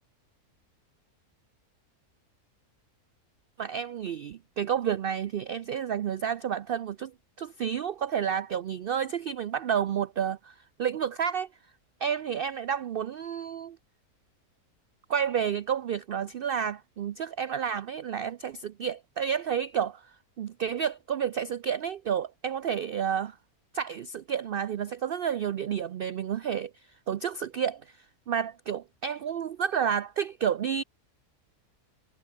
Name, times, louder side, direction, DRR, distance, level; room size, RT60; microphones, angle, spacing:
voice 1, 3.6-7.1 7.4-11.5 12.0-13.8 15.1-20.0 20.4-23.4 23.7-26.7 27.1-27.9 28.3-30.8, right 8 dB, 85° right, 0.5 m, -30 dB
omnidirectional pair, 1.6 m